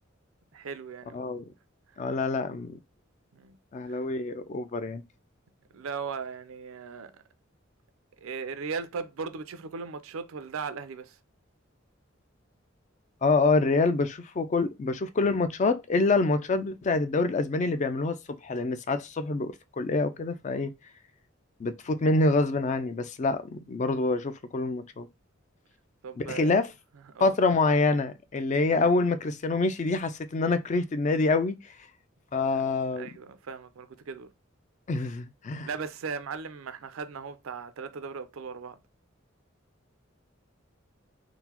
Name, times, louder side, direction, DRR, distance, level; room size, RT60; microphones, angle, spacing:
voice 1, 0.5-1.2 3.3-3.6 3.9-4.0 5.7-7.1 8.2-11.2 26.0-26.5 27.1-27.4 32.9-34.3 35.6-38.8, right 5 dB, 90° right, 0.4 m, -37 dB
voice 2, 1.1-1.4 2.0-2.8 3.7-5.0 13.2-20.7 21.6-25.1 26.2-26.7 27.2-31.6 32.3-33.1 34.9-35.7, left 3 dB, 35° left, 0.3 m, -26 dB
3.7 x 2.0 x 2.8 m
head